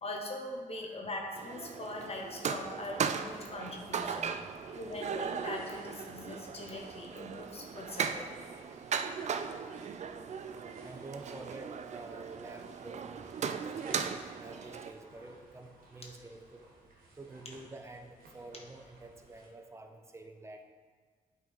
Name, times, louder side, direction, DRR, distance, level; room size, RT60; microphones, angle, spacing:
voice 1, 0.0-8.3, left 2 dB, 45° left, 0 dB, 1.0 m, -42 dB
sound 1, 1.4-14.9, right 6 dB, 50° right, 0.4 m, -38 dB
sound 2, 1.5-19.5, right 2 dB, 85° right, 1.4 m, -58 dB
voice 2, 4.3-4.8 10.8-16.7 17.2-20.6, right 2 dB, 20° right, 4 dB, 0.7 m, -49 dB
8.1 x 3.8 x 4.7 m, 1.5 s
cardioid pair, 85°, 15 cm